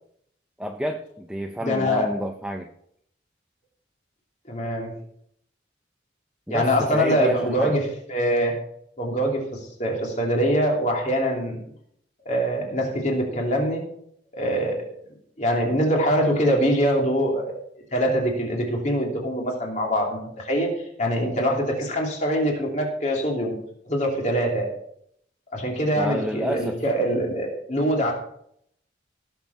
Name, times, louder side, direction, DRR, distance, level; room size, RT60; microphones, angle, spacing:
voice 1, 0.6-2.7 6.5-7.7 26.0-26.8, equal, 5° right, 3 dB, 0.6 m, -29 dB
voice 2, 1.6-2.1 4.5-5.0 6.5-8.6 9.0-11.7 12.2-13.8 14.3-14.8 15.4-17.5 17.9-20.7 21.0-23.5 23.9-24.7 25.5-28.1, equal, 40° left, 0 dB, 3.0 m, -23 dB
17.5 x 7.1 x 4.2 m, 0.70 s
head